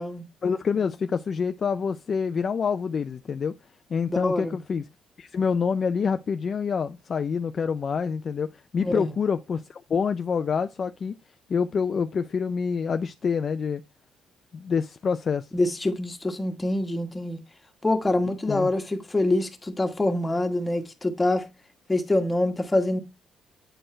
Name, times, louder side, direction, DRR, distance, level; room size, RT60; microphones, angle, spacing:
voice 1, 0.4-3.5 3.9-4.8 5.2-11.1 11.5-13.8 14.5-15.5 18.5-18.7, left 6 dB, 40° left, 0.4 m, -27 dB
voice 2, 4.2-4.6 8.8-9.1 15.5-17.4 17.8-21.5 21.9-23.0, left 2 dB, 15° left, 1.3 m, -25 dB
8.9 x 4.4 x 3.2 m
cardioid pair, 115°, 0 cm